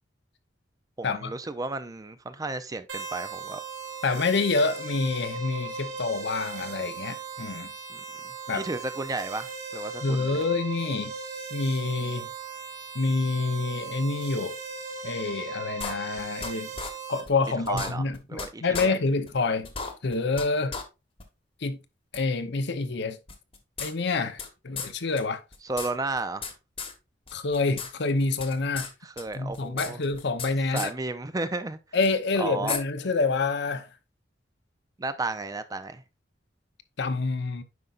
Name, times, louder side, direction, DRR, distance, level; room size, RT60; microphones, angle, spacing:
voice 1, 1.0-3.6 7.9-10.4 17.7-18.9 25.6-26.5 29.0-30.0 30.7-31.8 32.4-32.8 35.0-36.0, right 3 dB, 20° right, 0.5 m, -33 dB
sound 1, 2.9-17.2, right 4 dB, 75° right, 3.0 m, -38 dB
voice 2, 4.0-7.7 8.5-8.6 10.0-11.1 11.5-12.3 12.9-14.6 15.0-16.7 17.1-19.7 20.0-20.7 21.6-21.8 22.1-23.2 23.8-25.4 27.3-28.9 29.3-30.9 31.9-33.9 37.0-37.6, left 3 dB, 65° left, 0.8 m, -27 dB
sound 2, 15.8-16.5 16.8-16.9 17.3-17.4 17.7-18.5 18.7-18.9 19.3-19.4 19.6-20.5 20.7-20.8 21.2-21.3 22.1-22.2 23.3-24.5 24.8-24.9 25.2-25.3 25.5-26.5 26.8-26.9 27.3-27.9 28.2-28.9 29.2-30.5 30.8-30.9 32.0-32.1 32.7-32.8, left 5 dB, 30° left, 1.2 m, -34 dB
9.5 x 5.2 x 2.5 m
head